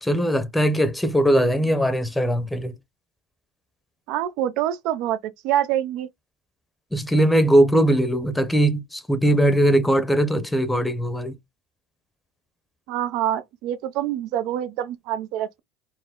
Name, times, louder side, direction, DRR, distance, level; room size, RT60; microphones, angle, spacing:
voice 1, 0.0-2.7 6.9-11.4, right 1 dB, 5° left, 0.8 m, -20 dB
voice 2, 4.1-6.1 12.9-15.6, right 11 dB, 65° right, 0.6 m, -26 dB
4.6 x 2.1 x 3.7 m
supercardioid pair, 100°, 0 cm